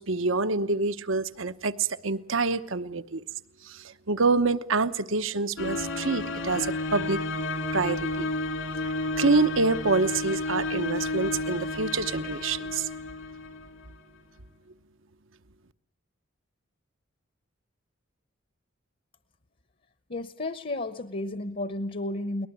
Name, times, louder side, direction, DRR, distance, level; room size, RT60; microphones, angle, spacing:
voice 1, 0.0-3.2 3.6-7.2 7.7-8.3 9.2-12.9, right 3 dB, 75° right, 12 dB, 1.0 m, -26 dB
sound 1, 5.6-13.9, left 2 dB, 75° left, 2.5 m, -32 dB
voice 2, 20.1-22.5, left 2 dB, 45° left, 13 dB, 0.9 m, -32 dB
22.5 x 19.5 x 9.3 m, 0.71 s
head